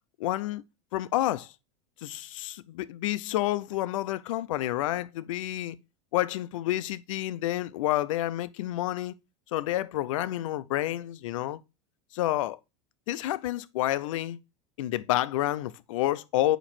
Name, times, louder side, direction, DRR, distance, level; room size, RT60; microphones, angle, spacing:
voice 1, 0.2-0.6 0.9-1.5 2.0-5.8 6.1-9.1 9.5-11.6 12.1-12.6 13.1-14.4 14.8-16.6, left 14 dB, 85° left, 0.5 m, -29 dB
8.7 x 3.0 x 4.2 m
supercardioid pair, 130°, 16 cm